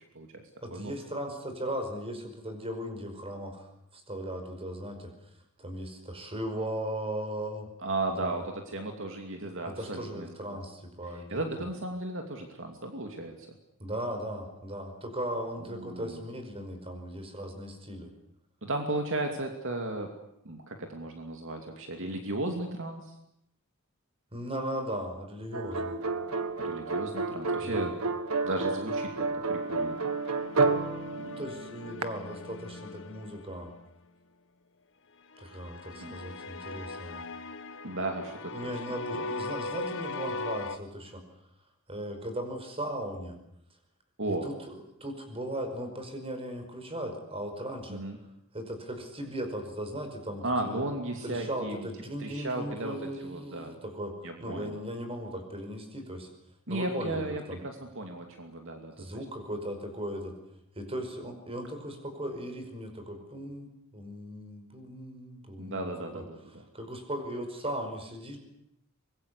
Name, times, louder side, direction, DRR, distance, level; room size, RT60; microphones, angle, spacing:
voice 1, 0.6-3.7 3.9-5.1 5.6-7.7 8.2-8.4 9.7-11.5 13.8-18.1 24.3-25.9 27.6-27.9 31.2-33.7 35.4-37.2 38.5-41.2 41.9-43.4 44.3-48.0 48.5-50.9 51.2-54.1 54.4-56.3 56.7-57.2 57.5-57.6 59.0-60.4 60.7-66.2 66.7-68.4, right 1 dB, 25° right, 6 dB, 5.4 m, -37 dB
voice 2, 7.8-10.6 11.3-13.5 15.7-16.2 18.6-20.1 20.4-23.1 26.6-27.9 28.4-30.0 36.0-36.2 37.8-38.7 44.2-44.5 47.9-48.2 50.4-51.9 52.2-53.8 54.2-54.7 56.7-59.0 65.6-66.6, right 2 dB, 60° right, 4 dB, 2.7 m, -35 dB
sound 1, 25.5-32.0, right 3 dB, 85° right, 1.8 m, -30 dB
sound 2, 29.5-33.9 35.3-40.8, left 3 dB, 60° left, 1.4 m, -40 dB
24.5 x 21.5 x 8.5 m, 0.80 s
head